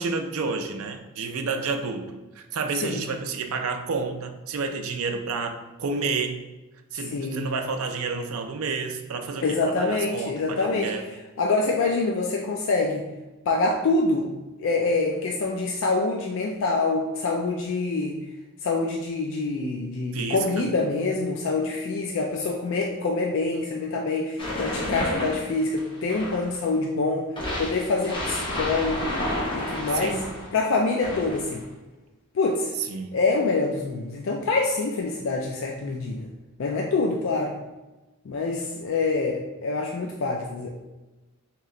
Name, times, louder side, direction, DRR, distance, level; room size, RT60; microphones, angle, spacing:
voice 1, 0.0-6.4 6.9-11.1 20.1-20.7 29.9-30.3 32.9-33.1, right 4 dB, 75° right, 6 dB, 0.4 m, -30 dB
voice 2, 7.1-7.5 9.4-10.9 11.4-13.0 13.5-14.3 14.6-18.2 18.6-27.3 27.6-29.1 29.5-30.2 30.5-31.6 32.3-32.7 33.1-36.3 36.6-37.5 38.3-40.7, left 3 dB, 60° left, 0 dB, 0.3 m, -25 dB
sound 1, 24.4-26.6 27.4-30.5 31.0-31.6, left 1 dB, 20° left, 0.8 m, -30 dB
3.2 x 3.0 x 3.7 m, 1.1 s
head